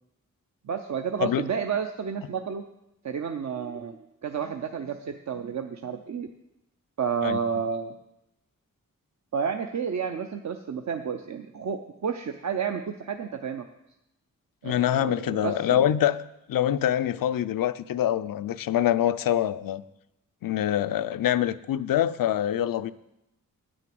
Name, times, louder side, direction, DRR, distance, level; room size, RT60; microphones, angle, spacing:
voice 1, 0.6-2.6 3.0-6.3 7.0-7.9 9.3-13.7 14.6-15.8, right 6 dB, 55° right, 6 dB, 0.7 m, -31 dB
voice 2, 14.6-16.2 16.5-19.8 20.4-22.9, left 11 dB, 80° left, 14 dB, 0.5 m, -25 dB
9.1 x 6.2 x 7.7 m, 0.87 s
cardioid pair, 60°, 33 cm